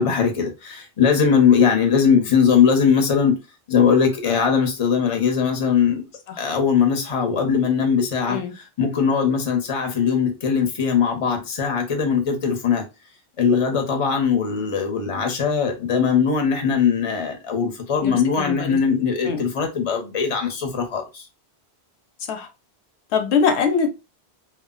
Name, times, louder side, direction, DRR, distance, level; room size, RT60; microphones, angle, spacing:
voice 1, 0.0-3.4 3.7-6.0 6.4-8.4 8.8-12.8 13.4-21.2, left 6 dB, 35° left, 0.7 m, -20 dB
voice 2, 18.0-19.4 22.3-22.5 23.1-23.9, left 6 dB, 85° left, 0.9 m, -23 dB
2.3 x 2.1 x 3.6 m
omnidirectional pair, 1.1 m